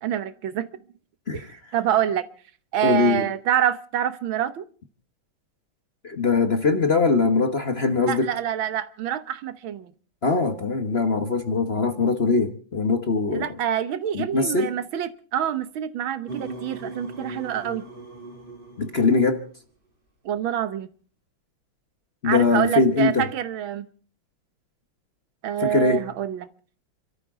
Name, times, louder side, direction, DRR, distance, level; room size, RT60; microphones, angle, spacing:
voice 1, 0.0-0.7 1.3-2.3 2.7-4.7 8.1-9.9 13.3-17.8 20.2-20.9 22.2-23.9 25.4-26.5, right 10 dB, 70° right, 1.7 m, -26 dB
voice 2, 2.8-3.3 6.0-8.3 10.2-13.5 14.1-14.7 18.8-19.4 22.2-23.3 25.6-26.0, left 4 dB, 35° left, 1.1 m, -22 dB
sound 1, 16.3-19.6, right 2 dB, 25° right, 2.9 m, -39 dB
30.0 x 13.5 x 3.6 m
omnidirectional pair, 2.3 m